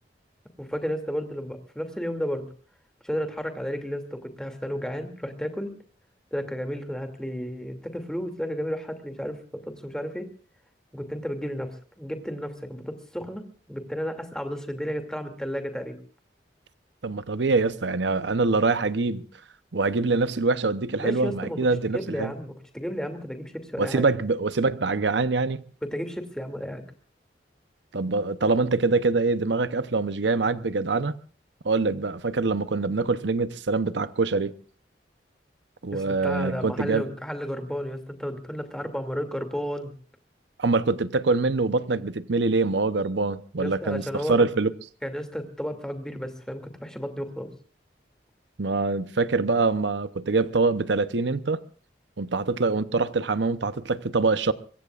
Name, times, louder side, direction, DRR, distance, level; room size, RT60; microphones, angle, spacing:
voice 1, 0.6-2.5 3.0-5.7 6.3-10.3 10.9-13.4 13.7-16.0 21.0-21.6 21.9-24.1 25.8-26.8 35.9-39.9 43.5-44.5 45.0-47.5, equal, 5° left, 2.6 m, -32 dB
voice 2, 17.0-19.2 19.7-22.3 23.8-25.6 27.9-31.1 31.6-34.5 35.8-37.0 40.6-44.7 48.6-51.6 52.2-54.5, right 3 dB, 85° right, 0.8 m, -24 dB
25.0 x 22.5 x 2.5 m
head